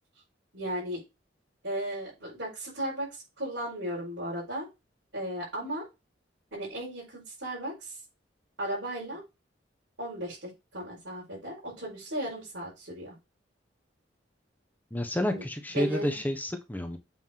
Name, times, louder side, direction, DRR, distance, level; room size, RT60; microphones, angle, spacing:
voice 1, 0.5-1.0 1.6-4.7 5.1-5.9 6.5-8.0 8.6-9.2 10.0-13.1 15.3-15.4 15.7-16.2, right 1 dB, 80° right, -7 dB, 5.1 m, -35 dB
voice 2, 14.9-17.0, left 1 dB, 10° left, 6 dB, 1.1 m, -30 dB
7.6 x 5.7 x 2.9 m, 0.24 s
head